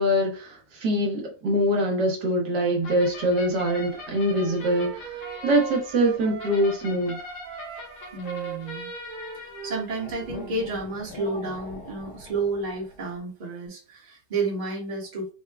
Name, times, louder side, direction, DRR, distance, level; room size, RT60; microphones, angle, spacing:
voice 1, 0.0-7.2, equal, 65° right, 1.4 m, -24 dB
sound 1, 2.8-13.2, left 2 dB, 65° left, 1.4 m, -42 dB
Wind instrument woodwind instrument, 3.9-6.8 7.1-10.6, right 7 dB, 85° right, 1.3 m, -39 dB
voice 2, 8.1-8.9 9.3-15.3, right 3 dB, 30° right, 1.0 m, -31 dB
3.7 x 2.2 x 3.3 m
omnidirectional pair, 2.1 m